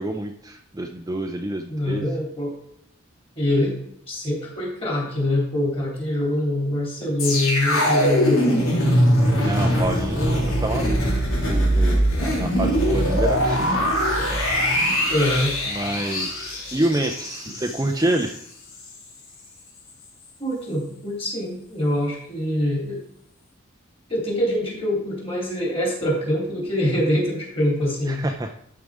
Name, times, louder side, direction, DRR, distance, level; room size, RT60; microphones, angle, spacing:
voice 1, 0.0-2.1 9.4-13.8 15.7-18.4 28.1-28.5, right 1 dB, 15° right, 3 dB, 0.5 m, -28 dB
voice 2, 1.7-2.5 3.3-3.8 4.1-8.7 15.1-15.5 20.4-23.0 24.1-28.2, left 1 dB, 25° left, -3 dB, 3.4 m, -24 dB
sound 1, 7.2-18.4 18.7-18.9, equal, 75° left, 3.4 m, -22 dB
12.5 x 4.8 x 4.9 m, 0.72 s
head